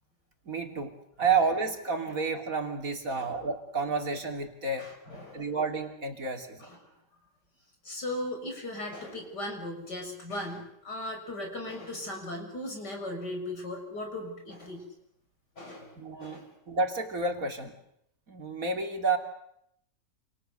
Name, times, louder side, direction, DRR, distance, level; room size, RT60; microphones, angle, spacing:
voice 1, 0.5-4.9 5.3-6.7 16.0-17.7 18.3-19.2, right 4 dB, 50° right, 5 dB, 3.5 m, -30 dB
voice 2, 4.8-5.5 6.6-6.8 7.8-14.9 15.6-16.5, left 1 dB, 70° left, 3 dB, 7.2 m, -38 dB
28.5 x 28.5 x 6.8 m, 0.75 s
omnidirectional pair, 1.9 m